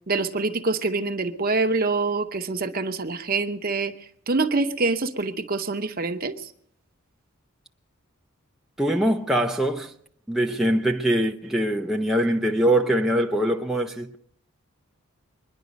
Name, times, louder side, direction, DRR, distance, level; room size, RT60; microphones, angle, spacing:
voice 1, 0.1-6.5, right 3 dB, 45° right, 0.8 m, -26 dB
voice 2, 8.8-9.9 10.3-14.2, right 1 dB, ahead, 0.5 m, -23 dB
23.0 x 10.5 x 5.2 m
head